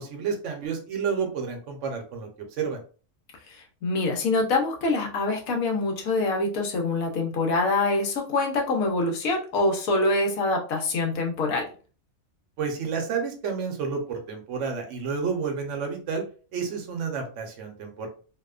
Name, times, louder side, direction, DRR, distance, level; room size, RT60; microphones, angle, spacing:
voice 1, 0.0-2.3 2.6-2.8 12.6-16.2 16.5-18.1, right 5 dB, 70° right, 3 dB, 1.0 m, -30 dB
voice 2, 3.5-11.7, left 2 dB, 80° left, 2 dB, 1.1 m, -25 dB
2.8 x 2.1 x 2.3 m, 0.37 s
omnidirectional pair, 1.4 m